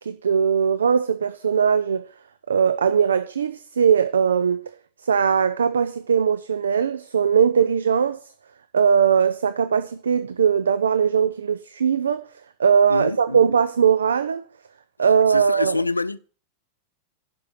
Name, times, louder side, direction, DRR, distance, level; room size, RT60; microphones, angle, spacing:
voice 1, 0.0-2.0 2.5-4.6 5.0-8.2 8.7-12.3 12.6-14.4 15.0-15.8, right 7 dB, 70° right, 0.5 m, -20 dB
voice 2, 12.9-13.5 15.3-16.2, left 3 dB, 85° left, 0.4 m, -26 dB
11.0 x 5.4 x 6.3 m
figure-of-eight pair, 90°, 0 cm